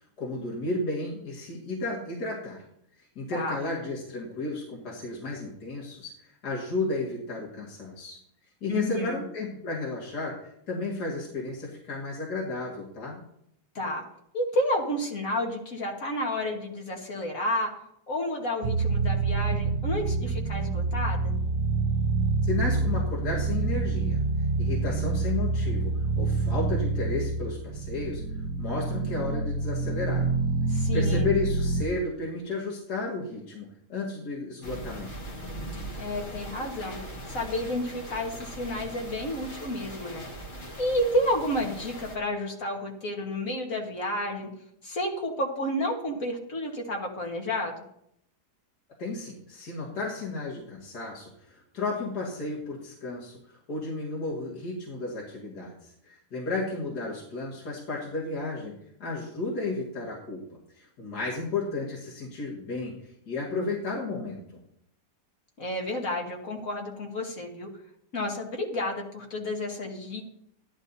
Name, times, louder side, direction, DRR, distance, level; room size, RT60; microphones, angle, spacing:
voice 1, 0.2-2.6 3.0-8.2 8.6-13.2 22.5-24.2 24.6-28.2 28.6-30.3 30.7-35.1 49.0-58.7 59.0-60.4 60.7-64.6, left 3 dB, 70° left, -4 dB, 2.6 m, -33 dB
voice 2, 8.7-9.2 13.8-14.0 14.3-17.7 18.1-21.3 30.7-31.3 36.0-37.0 37.3-40.2 40.8-44.5 44.8-47.8 65.6-67.7 68.1-70.2, left 1 dB, 55° left, 1 dB, 1.9 m, -30 dB
sound 1, 18.6-31.8, right 3 dB, 75° right, 1.2 m, -27 dB
sound 2, 34.6-42.2, right 1 dB, 35° left, 1.6 m, -40 dB
13.5 x 11.0 x 2.7 m, 0.72 s
omnidirectional pair, 1.8 m